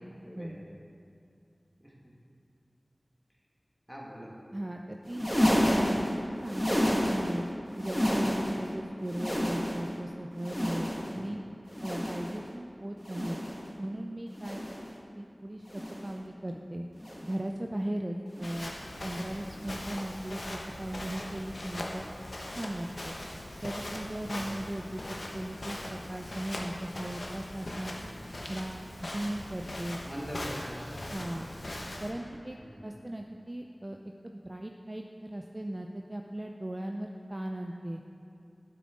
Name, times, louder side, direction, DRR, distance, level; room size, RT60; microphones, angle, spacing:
voice 1, 0.2-0.8 1.8-2.1 3.9-4.4 11.1-11.4 18.5-18.6 19.5-19.7 24.3-24.7 28.0-28.4 30.1-31.9 32.6-32.9, equal, 5° right, -3 dB, 1.7 m, -45 dB
voice 2, 4.5-7.5 7.8-11.4 11.8-13.4 13.8-14.8 15.2-16.9 17.2-18.7 19.0-22.0 22.4-23.2 23.6-28.0 28.5-30.0 31.1-31.5 32.0-32.6 32.8-34.0 34.2-38.0, right 1 dB, 35° right, 2 dB, 0.4 m, -37 dB
sound 1, 5.0-7.4 7.7-8.7 9.0-10.0 10.4-11.2 11.7-12.4 13.0-13.7 14.3-14.9 15.6-16.2 17.0-17.4 18.3-18.6 19.6-19.8 21.0-21.1, equal, 15° left, 1.5 m, -30 dB
Walk footsteps, 18.4-32.1, left 1 dB, 70° left, 1.0 m, -40 dB
9.4 x 7.6 x 3.7 m, 2.6 s
wide cardioid pair, 40°, 0 cm